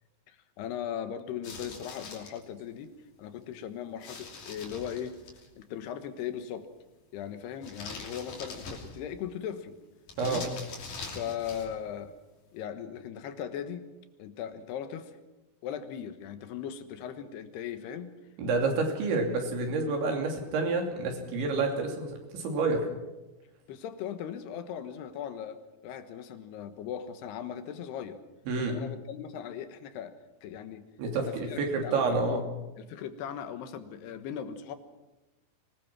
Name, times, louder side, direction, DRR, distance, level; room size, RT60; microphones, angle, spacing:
voice 1, 0.3-5.2 5.6-6.7 7.1-9.8 10.2-10.5 11.1-12.1 12.5-13.9 14.2-15.2 15.6-18.1 23.7-28.2 28.6-30.2 30.4-30.9 31.1-32.5 32.8-34.8, left 9 dB, 70° left, 9 dB, 3.2 m, -38 dB
sound 1, 1.4-2.4 4.0-5.5 7.6-9.2 10.1-11.8, left 3 dB, 50° left, 4.2 m, -43 dB
voice 2, 10.2-10.5 18.4-22.8 28.5-28.8 31.0-32.4, right 3 dB, 90° right, 2 dB, 5.2 m, -29 dB
24.5 x 20.0 x 6.1 m, 1.1 s
omnidirectional pair, 5.1 m